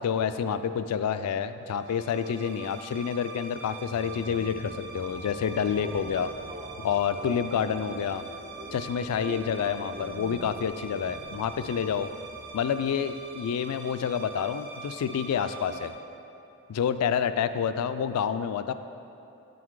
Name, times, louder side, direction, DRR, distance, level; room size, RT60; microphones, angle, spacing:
voice 1, 0.0-6.3 6.8-8.3 8.7-12.1 12.5-15.9 16.7-18.7, left 7 dB, 85° left, 12 dB, 0.3 m, -28 dB
sound 1, 1.7-15.9, right 3 dB, 50° right, 1.3 m, -43 dB
sound 2, 4.9-12.4, right 1 dB, 25° right, 0.3 m, -46 dB
8.8 x 3.9 x 4.6 m, 2.8 s
head